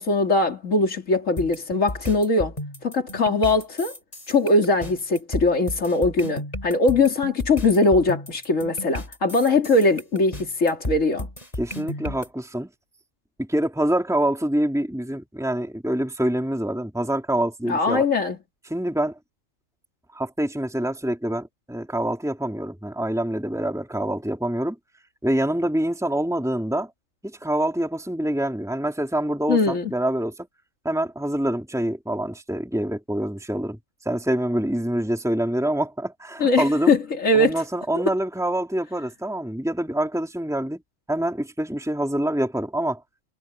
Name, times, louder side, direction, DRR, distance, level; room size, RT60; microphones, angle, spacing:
voice 1, 0.0-2.6 2.8-4.0 4.3-11.3 17.7-18.4 29.5-29.9 36.4-37.6, left 2 dB, 80° left, 3.1 m, -21 dB
sound 1, 1.4-12.3, left 1 dB, 30° left, 3.4 m, -34 dB
voice 2, 11.6-12.7 13.4-18.0 18.7-19.2 20.1-24.8 25.2-26.9 27.2-30.5 30.8-33.8 34.0-36.9 37.3-40.8 41.1-43.0, right 1 dB, ahead, 3.1 m, -26 dB
omnidirectional pair, 1.3 m